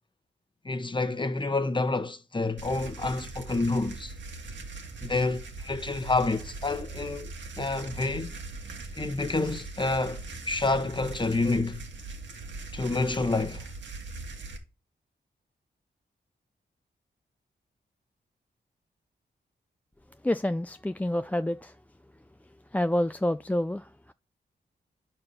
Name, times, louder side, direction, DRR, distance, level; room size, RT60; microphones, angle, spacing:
voice 1, 0.6-4.1 5.0-7.3 7.6-8.3 9.0-11.9 12.7-13.6, left 3 dB, 25° left, 1.1 m, -28 dB
sound 1, 2.6-14.6, right 3 dB, 75° right, 1.9 m, -41 dB
voice 2, 20.2-21.8 22.7-24.1, left 1 dB, 10° left, 0.4 m, -28 dB
9.5 x 4.3 x 6.6 m
cardioid pair, 75°, 19 cm